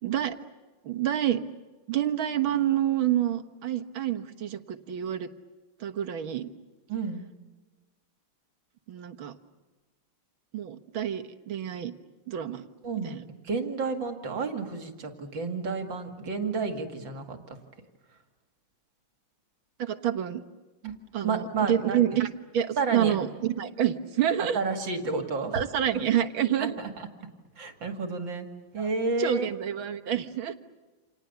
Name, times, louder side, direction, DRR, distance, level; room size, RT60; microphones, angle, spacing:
voice 1, 0.0-0.4 0.8-1.4 1.9-5.3 5.8-6.5 8.9-9.4 10.5-11.9 12.3-12.6 13.0-13.2 19.8-20.4 21.1-22.3 22.5-24.6 25.5-26.8 28.8-28.9 29.2-30.5, right 10 dB, 90° right, 6 dB, 2.2 m, -28 dB
voice 2, 6.9-7.2 12.8-13.2 13.4-17.6 20.8-21.0 21.2-22.2 22.8-23.2 24.4-25.6 25.9-26.0 26.6-26.9 27.6-28.5 28.7-29.5, right 4 dB, 70° right, 5 dB, 3.0 m, -31 dB
29.5 x 28.0 x 7.0 m, 1.2 s
omnidirectional pair, 2.2 m